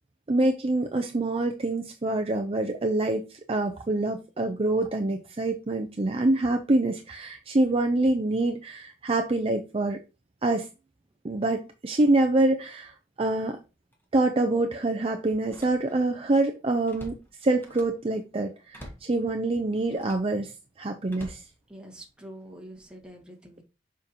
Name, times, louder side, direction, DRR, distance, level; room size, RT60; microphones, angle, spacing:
voice 1, 0.3-10.0 10.4-10.7 11.2-12.9 13.2-13.6 14.1-17.2 17.4-20.5 20.8-21.4, right 2 dB, 30° right, 0.5 m, -26 dB
Slam, 13.3-13.5 13.9-14.0 15.4-16.2 16.5-18.1 18.7-19.2 19.9-20.4 21.1-22.2 22.7-23.1, equal, 10° left, 1.5 m, -47 dB
voice 2, 21.7-23.6, equal, 5° right, 1.6 m, -45 dB
6.9 x 5.2 x 2.8 m
head